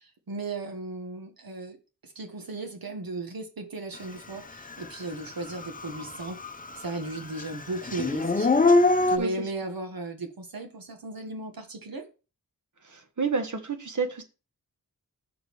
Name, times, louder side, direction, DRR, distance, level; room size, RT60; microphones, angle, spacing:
voice 1, 0.0-1.8 2.0-6.4 6.7-8.5 9.1-12.1, right 2 dB, 75° right, 1.6 m, -36 dB
Dog / Siren, 4.8-4.9 5.4-6.8 7.1-9.2, left 3 dB, 25° left, 0.7 m, -23 dB
voice 2, 12.9-14.2, right 4 dB, 55° right, 1.3 m, -29 dB
6.5 x 5.1 x 4.7 m
wide cardioid pair, 95°, 35 cm